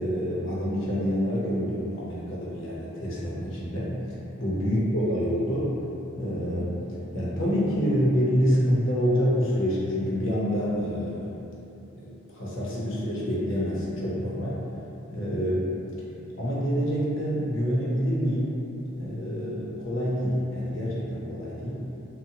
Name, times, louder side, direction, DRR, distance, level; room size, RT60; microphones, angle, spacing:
voice 1, 0.0-3.9 4.4-5.7 6.2-6.8 7.1-11.3 11.9-14.6 15.1-15.7 16.4-18.6 19.0-21.8, equal, 65° left, -7 dB, 0.6 m, -27 dB
2.7 x 2.0 x 2.7 m, 2.9 s
head